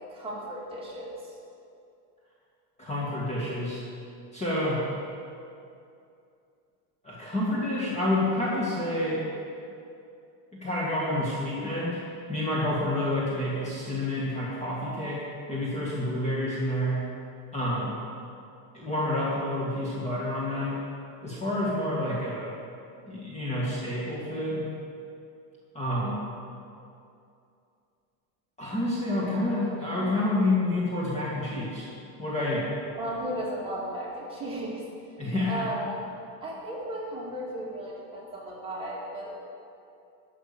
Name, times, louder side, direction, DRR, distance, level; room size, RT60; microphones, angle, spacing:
voice 1, 0.1-1.4 33.0-34.8 35.5-36.0 36.4-39.4, right 1 dB, 10° right, -6 dB, 2.6 m, -35 dB
voice 2, 2.8-3.8 4.3-4.9 7.0-9.3 10.5-12.0 12.3-17.1 17.5-18.0 18.7-20.8 21.2-22.5 23.1-24.7 25.7-26.2 28.6-31.9 32.2-32.7 35.2-35.6, left 1 dB, 15° left, -7 dB, 1.8 m, -28 dB
12.0 x 6.1 x 6.8 m, 2.6 s
supercardioid pair, 145°, 45 cm